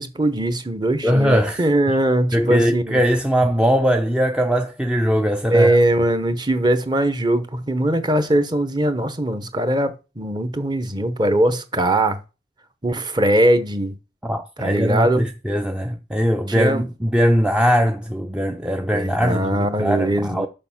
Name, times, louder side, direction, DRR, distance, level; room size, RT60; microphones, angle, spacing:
voice 1, 0.0-3.0 5.5-12.2 12.8-13.9 14.6-15.3 16.5-16.9 18.9-20.5, right 1 dB, 25° right, 0.9 m, -20 dB
voice 2, 1.0-1.6 2.3-5.8 14.2-20.5, equal, 5° right, 0.5 m, -20 dB
6.7 x 5.8 x 7.2 m
head